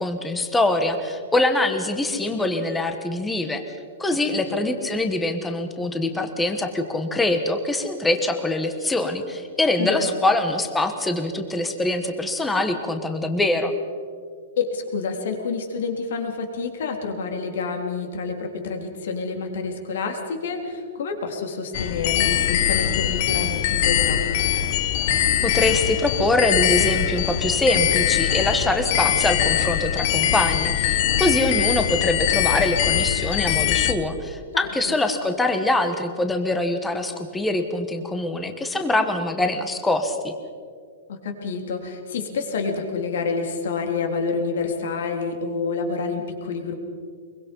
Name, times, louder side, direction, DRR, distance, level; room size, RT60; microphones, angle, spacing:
voice 1, 0.0-3.6 4.0-13.7 25.4-40.3, left 2 dB, 5° left, 6 dB, 1.2 m, -24 dB
voice 2, 9.8-10.2 14.6-24.2 34.9-35.0 41.1-46.8, left 4 dB, 60° left, 4 dB, 3.5 m, -28 dB
sound 1, 21.7-33.9, left 10 dB, 35° left, 1.1 m, -22 dB
24.0 x 22.5 x 5.4 m, 2.1 s
hypercardioid pair, 175°, 0 cm